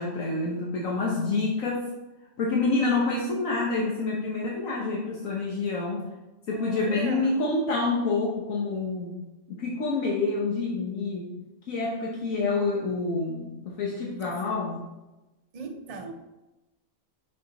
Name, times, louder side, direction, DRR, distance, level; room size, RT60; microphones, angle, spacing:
voice 1, 0.0-1.9 2.4-6.1 6.5-9.2 9.5-11.3 11.7-14.8, left 3 dB, 80° left, -4 dB, 1.4 m, -27 dB
voice 2, 6.5-7.3 14.3-14.4 15.5-16.1, right 4 dB, 50° right, 4 dB, 0.4 m, -38 dB
6.5 x 4.2 x 4.0 m, 1.0 s
omnidirectional pair, 1.4 m